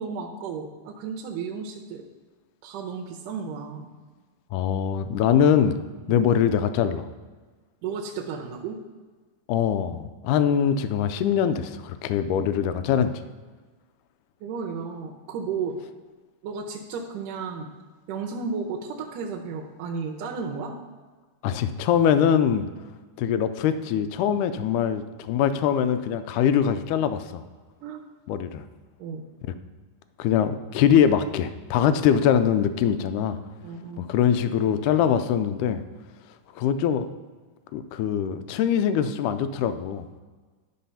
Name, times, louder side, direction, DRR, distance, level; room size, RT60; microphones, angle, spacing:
voice 1, 0.0-2.0 2.6-3.9 6.1-6.2 7.8-8.8 14.4-15.8 16.4-17.7 18.1-20.7 27.8-28.0 29.0-29.2 33.6-34.1, right 5 dB, 80° right, 0 dB, 2.3 m, -33 dB
voice 2, 4.5-5.7 6.1-7.1 9.5-13.1 21.4-22.7 23.2-27.4 28.3-28.6 30.2-33.4 34.0-35.8 36.6-37.1 37.7-40.1, left 8 dB, 80° left, 11 dB, 2.0 m, -23 dB
11.5 x 3.9 x 5.5 m, 1.4 s
omnidirectional pair, 3.9 m